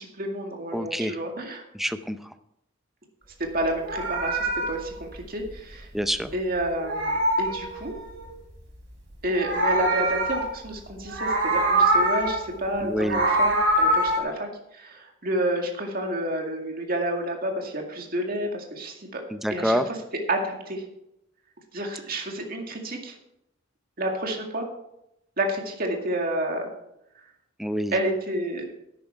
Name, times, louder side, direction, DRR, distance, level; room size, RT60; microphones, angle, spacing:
voice 1, 0.0-1.6 3.4-5.9 6.3-8.0 9.2-19.2 19.5-19.8 20.3-20.8 21.7-23.2 24.0-24.7 25.4-26.7 27.9-28.7, right 1 dB, 50° right, 2 dB, 2.1 m, -29 dB
voice 2, 0.7-1.2 1.7-2.3 5.9-6.3 12.8-13.2 19.3-19.9 27.6-27.9, equal, ahead, 10 dB, 0.5 m, -27 dB
Meow, 3.7-6.3 6.6-8.3 9.1-10.8 11.1-12.5 12.8-14.2, right 1 dB, 65° right, 3.7 m, -24 dB
11.5 x 9.1 x 4.6 m, 0.80 s
head